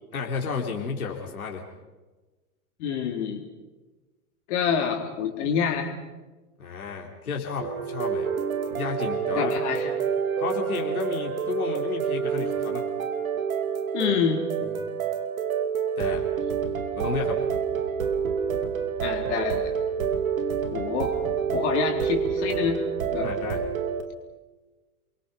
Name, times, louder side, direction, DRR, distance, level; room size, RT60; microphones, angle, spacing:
voice 1, 0.1-1.6 6.6-8.3 8.7-9.5 10.4-12.9 14.6-14.8 16.0-16.2 16.9-17.4 23.2-23.6, left 5 dB, 70° left, 0 dB, 3.7 m, -32 dB
voice 2, 2.8-3.4 4.5-5.9 9.3-10.0 13.9-14.4 19.0-19.7 20.7-21.1 21.5-22.8 23.1-23.3, left 7 dB, 50° left, 2 dB, 4.1 m, -27 dB
sound 1, 7.6-24.0, right 7 dB, 65° right, 2.9 m, -28 dB
29.5 x 23.5 x 5.6 m, 1.2 s
figure-of-eight pair, 95°, 45 cm